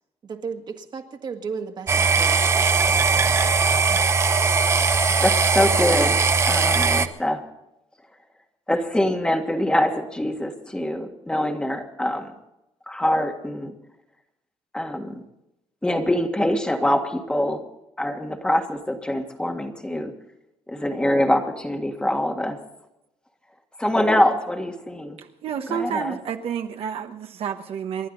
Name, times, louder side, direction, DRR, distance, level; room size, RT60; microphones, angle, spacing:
voice 1, 0.2-3.1, right 5 dB, 40° right, 5 dB, 1.8 m, -35 dB
sound 1, 1.9-7.1, right 4 dB, 25° right, 0.8 m, -19 dB
voice 2, 5.2-7.4 8.7-12.3 12.9-13.7 14.7-15.2 15.8-17.6 18.0-20.1 20.7-22.6 23.8-25.2 25.7-26.2, left 1 dB, 10° left, 4 dB, 1.7 m, -24 dB
voice 3, 25.4-28.1, right 8 dB, 65° right, 6 dB, 1.2 m, -29 dB
28.5 x 11.5 x 4.0 m, 0.89 s
cardioid pair, 150°, 11 cm